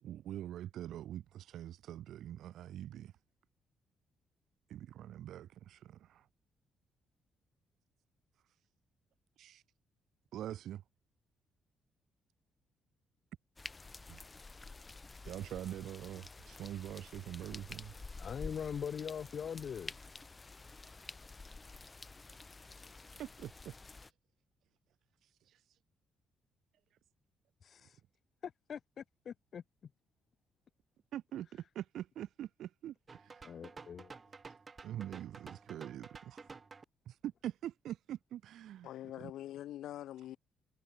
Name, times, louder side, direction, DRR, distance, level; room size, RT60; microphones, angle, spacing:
voice 1, 0.0-3.2 4.7-6.3 9.4-9.6 10.3-10.8 14.1-14.2 15.2-17.9 23.2-24.1 25.2-25.8 31.1-33.6 34.8-36.6 37.0-38.9 39.2-39.3, right 12 dB, 75° right, 1.4 m, -44 dB
sound 1, 13.6-24.1, left 3 dB, 25° left, 2.3 m, -50 dB
voice 2, 18.2-19.9 27.6-28.0 28.4-29.6 33.4-34.1, left 7 dB, 55° left, 2.9 m, -42 dB
sound 2, 33.1-36.9, right 4 dB, 30° right, 4.9 m, -52 dB
voice 3, 38.8-40.4, left 13 dB, 80° left, 7.9 m, -44 dB
cardioid pair, 90°, 0 cm